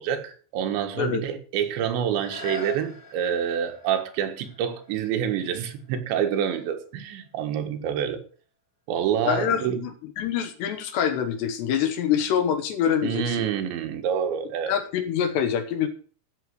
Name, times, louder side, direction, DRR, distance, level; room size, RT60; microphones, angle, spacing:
voice 1, 0.0-8.3 8.9-9.8 13.0-14.8, right 8 dB, 70° right, 3.5 m, -27 dB
sound 1, 2.1-7.7 8.3-8.4, left 2 dB, 10° left, 3.4 m, -43 dB
voice 2, 9.3-9.9 10.2-13.5 14.7-15.9, left 8 dB, 70° left, 2.8 m, -25 dB
14.0 x 7.1 x 6.6 m
omnidirectional pair, 5.9 m